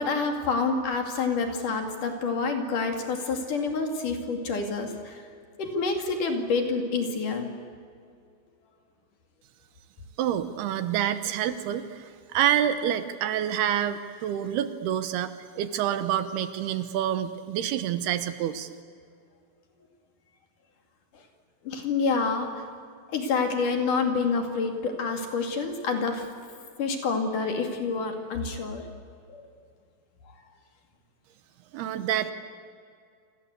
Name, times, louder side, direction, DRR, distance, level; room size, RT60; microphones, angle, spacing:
voice 1, 0.0-5.2 5.6-7.5 21.6-22.6 23.1-26.2 26.8-28.8 29.3-29.5, left 4 dB, 55° left, 4 dB, 3.6 m, -28 dB
voice 2, 10.2-18.7 31.7-32.3, right 10 dB, 75° right, 11 dB, 2.9 m, -27 dB
28.0 x 26.0 x 8.2 m, 2.2 s
omnidirectional pair, 4.9 m